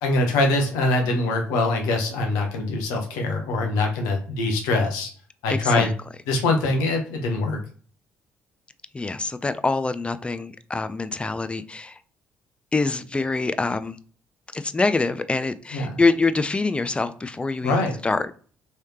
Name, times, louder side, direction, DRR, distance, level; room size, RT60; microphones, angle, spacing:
voice 1, 0.0-5.1 5.4-5.9 6.3-7.6 15.7-16.0 17.6-18.0, left 2 dB, 70° left, 2 dB, 0.8 m, -23 dB
voice 2, 5.5-5.9 8.9-12.0 12.7-14.0 14.5-18.3, left 3 dB, 15° left, 12 dB, 0.4 m, -25 dB
3.2 x 3.1 x 2.8 m, 0.43 s
hypercardioid pair, 45°, 6 cm